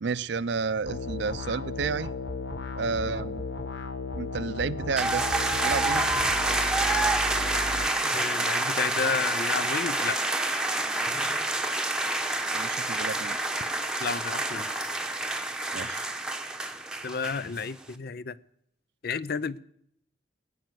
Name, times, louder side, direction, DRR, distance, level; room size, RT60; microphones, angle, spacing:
voice 1, 0.0-2.1 2.8-3.4 4.1-5.2 5.6-6.0 12.5-13.4 15.7-16.1, right 5 dB, 65° right, 18 dB, 0.5 m, -31 dB
sound 1, 0.9-7.9, left 2 dB, 75° left, 1.1 m, -35 dB
sound 2, 5.0-17.6, right 2 dB, 5° right, 0.9 m, -28 dB
voice 2, 8.1-10.2 14.0-14.7 17.0-18.4 19.0-19.6, left 5 dB, 55° left, 18 dB, 0.5 m, -31 dB
18.0 x 9.4 x 7.7 m, 0.73 s
head